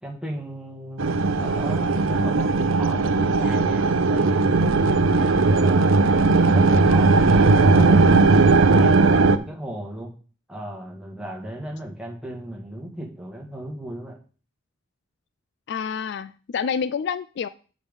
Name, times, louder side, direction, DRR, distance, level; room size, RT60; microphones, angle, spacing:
voice 1, 0.0-4.5 5.1-5.9 6.5-8.2 8.7-10.1 10.5-14.2, right 1 dB, 5° right, -1 dB, 1.7 m, -35 dB
sound 1, 1.0-9.4, right 3 dB, 90° right, 0.6 m, -18 dB
voice 2, 15.7-17.5, left 6 dB, 60° left, 15 dB, 0.3 m, -28 dB
7.3 x 5.2 x 5.4 m, 0.38 s
head